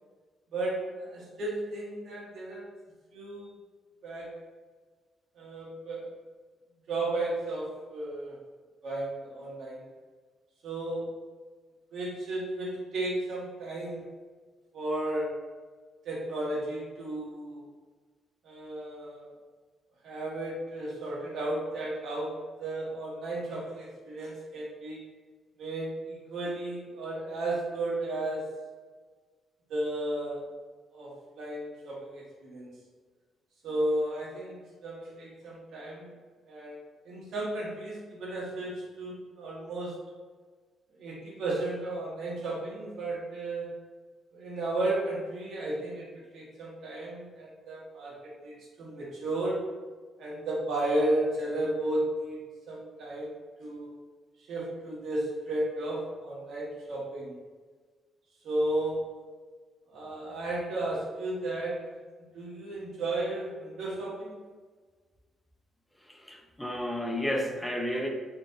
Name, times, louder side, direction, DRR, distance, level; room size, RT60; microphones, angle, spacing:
voice 1, 0.5-2.7 3.1-3.5 4.0-4.4 5.3-6.1 6.9-8.4 8.8-9.8 10.6-11.1 11.9-14.0 14.7-15.4 16.0-17.6 18.4-19.3 20.0-25.1 25.6-28.6 29.7-30.4 30.9-32.8 33.6-36.1 36.5-36.8 37.0-40.0 41.0-43.7 44.3-49.6 50.2-53.3 53.6-53.9 54.4-57.4 58.4-59.2 59.9-61.9 62.3-64.4, right 1 dB, 70° right, -5 dB, 1.4 m, -34 dB
voice 2, 66.0-68.1, equal, 5° left, 1 dB, 0.7 m, -32 dB
4.1 x 3.3 x 2.6 m, 1.5 s
cardioid pair, 90°, 0 cm